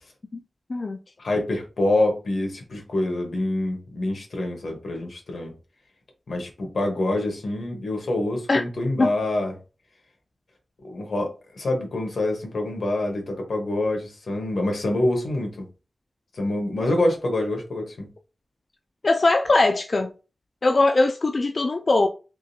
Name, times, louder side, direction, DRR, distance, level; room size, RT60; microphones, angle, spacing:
voice 1, 1.2-5.5 6.3-9.6 10.8-15.7 16.3-18.1, left 1 dB, 85° left, 1.1 m, -26 dB
voice 2, 19.0-20.1 20.6-22.1, left 2 dB, 55° left, 0.3 m, -20 dB
3.6 x 3.1 x 2.7 m
wide cardioid pair, 95°, 0 cm